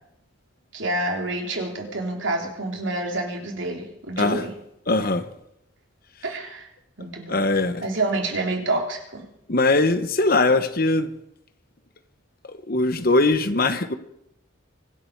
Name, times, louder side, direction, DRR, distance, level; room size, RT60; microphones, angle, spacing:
voice 1, 0.7-4.5 6.2-6.7 7.0-7.4 7.8-9.2, right 2 dB, 70° right, 2 dB, 3.3 m, -28 dB
voice 2, 4.9-5.2 7.3-7.8 9.5-11.1 12.5-13.9, left 2 dB, 45° left, 10 dB, 1.2 m, -21 dB
25.0 x 11.5 x 4.7 m, 0.78 s
head